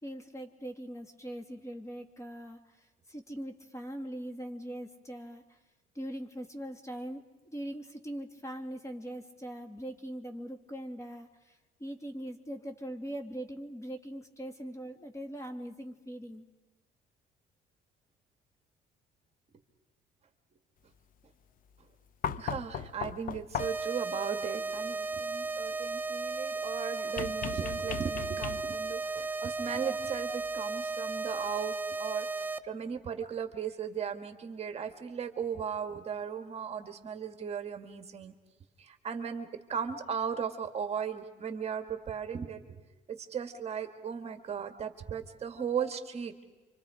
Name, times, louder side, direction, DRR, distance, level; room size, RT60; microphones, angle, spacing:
voice 1, 0.0-5.6 5.9-16.5, right 1 dB, 15° left, 5 dB, 2.6 m, -41 dB
sound 1, 22.2-24.0 27.2-28.9 30.4-30.5, left 8 dB, 55° left, 0.8 m, -37 dB
voice 2, 22.4-38.3 38.8-42.8 43.1-46.3, right 7 dB, 40° right, 6 dB, 1.9 m, -37 dB
sound 2, 23.6-32.6, right 3 dB, 10° right, 0.8 m, -35 dB
29.5 x 25.5 x 5.0 m, 1.2 s
cardioid pair, 110°, 17 cm